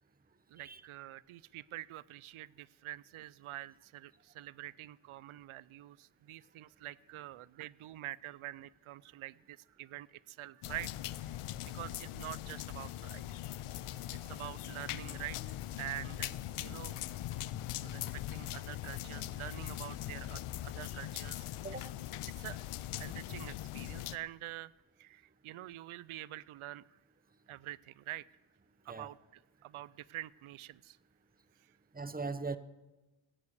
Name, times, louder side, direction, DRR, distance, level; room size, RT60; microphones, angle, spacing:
voice 1, 0.5-10.9 11.7-13.2 14.2-15.4 15.8-17.0 17.8-21.4 21.8-21.9 22.4-22.6 23.0-24.7 25.0-26.8 27.5-28.2 28.9-29.2 29.6-31.0, right 14 dB, 75° right, 22 dB, 0.5 m, -46 dB
sound 1, 10.6-24.2, left 14 dB, 85° left, 0.6 m, -41 dB
sound 2, 13.8-20.5, left 7 dB, 30° left, 0.5 m, -57 dB
voice 2, 31.9-32.6, right 4 dB, 20° right, 13 dB, 0.9 m, -40 dB
16.0 x 9.7 x 6.6 m, 1.1 s
cardioid pair, 50°, 50 cm